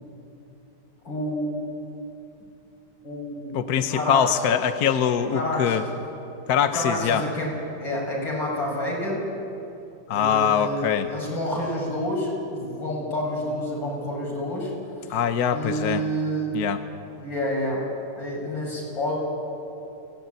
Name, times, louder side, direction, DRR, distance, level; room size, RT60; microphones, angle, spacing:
voice 1, 1.1-1.6 3.0-3.6 3.9-4.6 5.3-5.9 6.7-7.5 7.8-9.2 10.1-14.7 15.1-15.2 15.5-16.5 17.2-17.8 18.2-19.1, equal, 80° left, -3 dB, 7.1 m, -28 dB
voice 2, 3.5-5.8 6.5-7.2 10.1-11.1 15.1-16.0 16.5-16.8, left 8 dB, 60° left, 9 dB, 1.2 m, -23 dB
24.0 x 18.0 x 9.2 m, 2.9 s
omnidirectional pair, 2.0 m